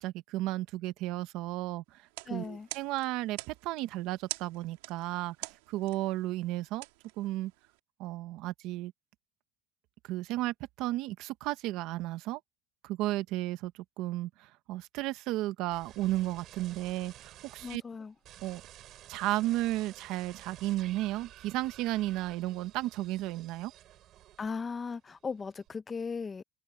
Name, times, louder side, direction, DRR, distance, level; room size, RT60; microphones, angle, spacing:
voice 1, 0.0-2.0 2.3-6.8 7.2-7.5 8.0-8.9 10.1-12.4 12.8-13.7 14.0-17.8 18.4-18.6 19.1-23.7, right 16 dB, 60° right, 1.2 m, -33 dB
sound 1, 2.0-7.8, right 22 dB, 90° right, 2.8 m, -46 dB
voice 2, 2.3-2.7 17.6-18.1 24.4-26.4, left 5 dB, 20° left, 0.6 m, -37 dB
sound 2, 15.7-17.8 18.2-24.8 25.1-25.7, right 13 dB, 45° right, 6.8 m, -52 dB
open air
cardioid pair, 135°, 0 cm